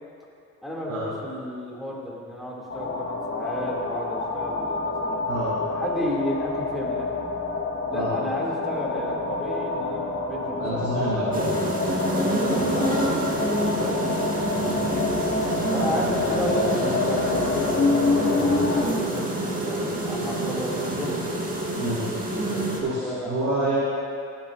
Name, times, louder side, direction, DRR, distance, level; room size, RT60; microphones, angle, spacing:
voice 1, 0.6-5.3 5.8-7.1 7.9-10.9 12.1-15.1 15.7-21.1 23.0-23.3, left 1 dB, ahead, -6 dB, 2.3 m, -33 dB
sound 1, 2.7-18.8, left 3 dB, 50° left, 1.6 m, -27 dB
voice 2, 10.6-11.8 12.1-12.5 21.8-22.0 22.8-23.9, right 1 dB, 90° right, -10 dB, 2.1 m, -27 dB
sound 2, 11.3-22.8, right 1 dB, 25° right, 1.6 m, -27 dB
15.5 x 8.5 x 2.5 m, 2.4 s
cardioid pair, 90°, 30 cm